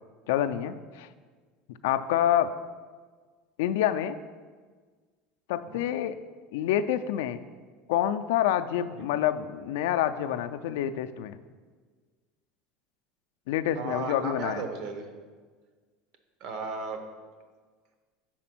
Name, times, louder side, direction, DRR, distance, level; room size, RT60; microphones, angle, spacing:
voice 1, 0.3-1.1 1.8-2.5 3.6-4.2 5.5-6.2 6.5-7.4 7.9-11.4 13.5-14.6, left 11 dB, 85° left, 10 dB, 0.3 m, -27 dB
voice 2, 13.7-15.1 16.4-17.0, right 4 dB, 50° right, 6 dB, 0.8 m, -35 dB
6.0 x 4.2 x 5.9 m, 1.5 s
cardioid pair, 155°, 0 cm